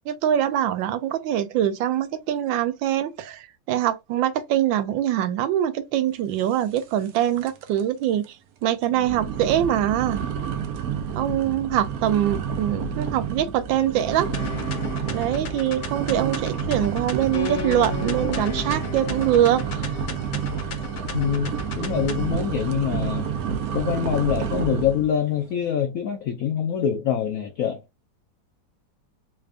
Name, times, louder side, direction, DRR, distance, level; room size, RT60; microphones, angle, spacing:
voice 1, 0.1-8.4 8.6-10.3 11.1-14.3 15.1-19.6, right 11 dB, 85° right, 1.3 m, -23 dB
sound 1, 6.8-7.2 7.4-7.8 8.2-8.3 8.9-25.1, right 7 dB, 70° right, 0.8 m, -29 dB
sound 2, 14.3-22.3, left 5 dB, 65° left, 1.3 m, -35 dB
voice 2, 21.1-23.3 23.7-27.8, left 9 dB, 85° left, 0.7 m, -25 dB
3.4 x 2.4 x 3.3 m
omnidirectional pair, 2.0 m